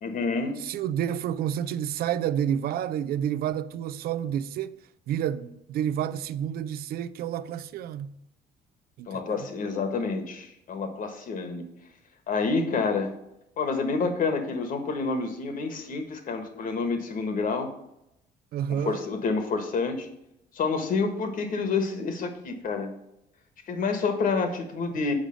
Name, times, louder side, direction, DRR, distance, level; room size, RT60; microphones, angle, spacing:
voice 1, 0.0-0.6 9.1-11.6 12.3-13.1 13.6-17.7 18.7-20.1 20.5-22.9 23.7-25.1, left 4 dB, 55° left, 1.4 m, -28 dB
voice 2, 0.6-4.8 5.1-8.1 9.0-9.5 18.5-19.0, right 10 dB, 65° right, 0.4 m, -29 dB
6.6 x 4.9 x 6.4 m
cardioid pair, 110°, 17 cm